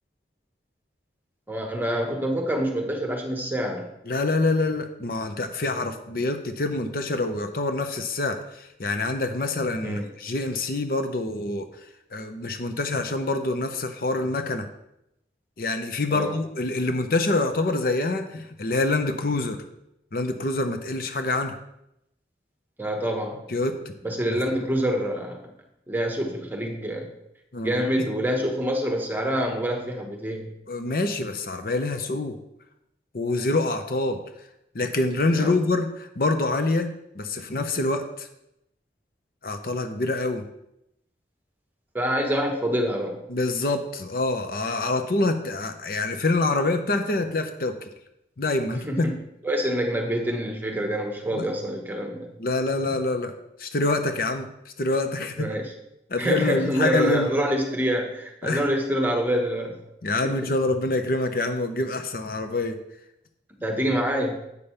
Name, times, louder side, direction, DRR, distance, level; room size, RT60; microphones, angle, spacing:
voice 1, 1.5-3.9 9.8-10.1 16.1-16.4 22.8-23.5 24.0-25.5 25.9-27.1 27.6-30.5 35.3-35.6 41.9-43.2 48.7-49.1 49.4-52.3 55.4-55.7 56.2-59.8 60.2-60.5 63.6-64.4, equal, 10° right, 2 dB, 1.1 m, -26 dB
voice 2, 4.1-11.7 12.1-14.7 15.6-19.6 20.1-21.5 23.5-23.9 24.3-24.4 27.5-27.8 30.7-32.3 33.1-34.2 34.7-38.3 39.4-40.4 43.3-47.8 48.4-49.1 51.3-51.5 52.4-53.3 53.6-54.5 54.8-55.5 56.1-57.3 58.4-58.6 60.0-62.8, left 2 dB, 55° left, 7 dB, 0.7 m, -26 dB
8.3 x 5.2 x 5.6 m, 0.82 s
head